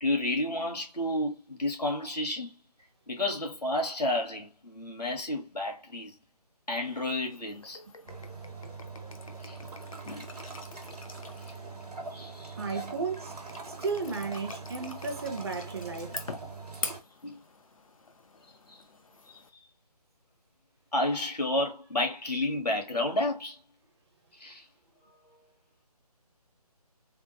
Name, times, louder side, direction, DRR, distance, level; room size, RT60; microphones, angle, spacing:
voice 1, 0.0-2.6 3.1-6.2 6.7-7.8 9.4-9.6 10.1-10.3 12.1-12.8 17.2-17.4 18.4-18.8 19.3-19.4 20.9-23.6 24.3-24.7, left 1 dB, 80° left, 1.5 m, -31 dB
sound 1, 6.8-19.5, left 4 dB, 55° left, 0.6 m, -45 dB
sound 2, 8.1-17.0, right 4 dB, 70° right, 1.2 m, -43 dB
voice 2, 12.6-13.3 13.8-16.2, right 4 dB, 40° right, 0.7 m, -34 dB
3.5 x 2.1 x 2.8 m
figure-of-eight pair, 155°, 20 cm